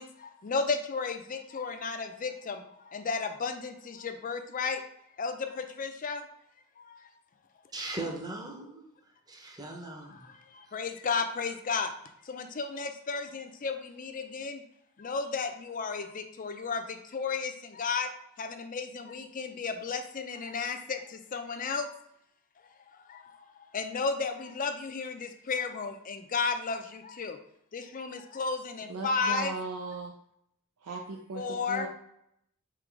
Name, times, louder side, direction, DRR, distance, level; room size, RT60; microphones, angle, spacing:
voice 1, 0.0-4.8 5.2-6.2 6.8-7.1 10.1-11.9 12.2-14.6 15.0-18.1 18.4-21.9 22.9-27.4 27.7-29.5 29.8-30.0 31.3-31.9, left 4 dB, 40° left, 0.5 m, -34 dB
voice 2, 7.7-8.8 9.3-10.3, right 2 dB, 20° right, 0.7 m, -39 dB
voice 3, 28.9-30.1 30.8-31.9, right 3 dB, 85° right, 0.5 m, -37 dB
3.8 x 2.9 x 4.6 m
head